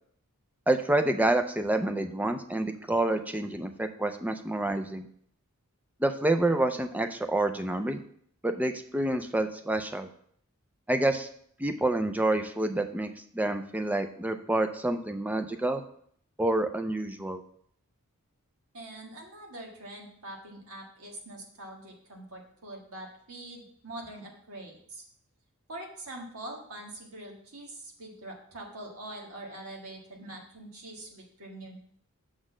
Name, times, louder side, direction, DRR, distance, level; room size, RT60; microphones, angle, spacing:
voice 1, 0.7-5.1 6.0-8.0 8.4-10.1 10.9-11.3 11.6-15.8 16.4-17.4, right 1 dB, 5° right, 7 dB, 0.4 m, -28 dB
voice 2, 18.7-25.0 25.7-31.8, right 1 dB, 70° right, 0 dB, 1.7 m, -44 dB
6.4 x 4.1 x 6.1 m, 0.64 s
head